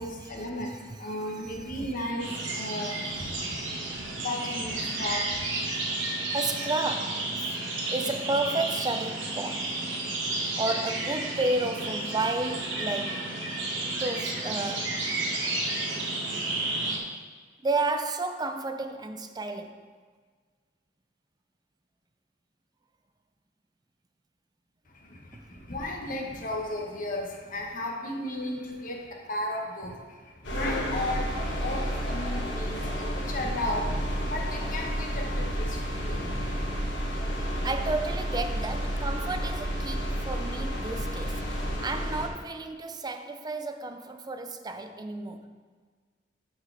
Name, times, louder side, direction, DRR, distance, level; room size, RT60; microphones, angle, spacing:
voice 1, 0.0-5.9 24.9-36.7, left 1 dB, 45° left, 1.1 m, -35 dB
voice 2, 0.6-1.0 5.8-5.9 6.3-7.6 7.9-9.8 10.6-13.3 14.0-15.0 17.6-19.9 25.3-25.5 37.6-45.5, right 2 dB, 20° right, 0.5 m, -32 dB
sound 1, 2.2-17.0, right 2 dB, 80° right, 1.4 m, -32 dB
sound 2, 30.4-42.3, equal, 70° left, 1.5 m, -31 dB
12.5 x 4.8 x 3.4 m
head